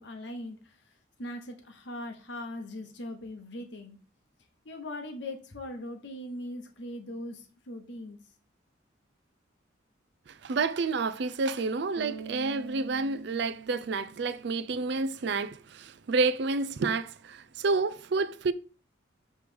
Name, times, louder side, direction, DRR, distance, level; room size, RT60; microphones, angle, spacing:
voice 1, 0.0-4.0 4.6-8.2, left 1 dB, 65° left, 1.0 m, -40 dB
voice 2, 10.3-18.5, right 4 dB, 60° right, 0.4 m, -29 dB
Bass guitar, 12.0-15.1, right 6 dB, 35° right, 1.2 m, -45 dB
7.6 x 3.2 x 5.1 m
head